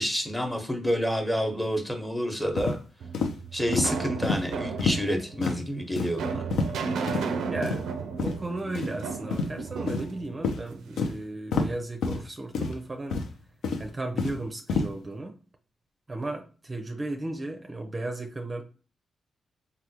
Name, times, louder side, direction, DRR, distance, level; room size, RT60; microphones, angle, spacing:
voice 1, 0.0-2.8 3.5-6.4, equal, 10° left, 1.0 m, -28 dB
sound 1, 2.6-2.8 3.1-3.3 3.7-3.9 4.2-4.4 4.8-5.0 5.4-5.6 6.0-6.1 6.5-6.8 7.1-7.2 7.6-7.8 8.2-8.3 8.8-8.9 9.3-9.5 9.9-10.1 10.4-10.6 11.0-11.1 11.5-11.7 12.0-12.2 12.5-12.7 13.1-13.3 13.6-14.4 14.7-14.9, left 4 dB, 80° left, 0.5 m, -28 dB
sound 2, 3.0-11.1, right 5 dB, 85° right, 0.4 m, -34 dB
voice 2, 7.5-7.9 8.2-13.2 13.8-15.4 16.1-18.6, right 2 dB, 30° right, 0.5 m, -35 dB
3.4 x 2.2 x 2.8 m
cardioid pair, 60°, 0 cm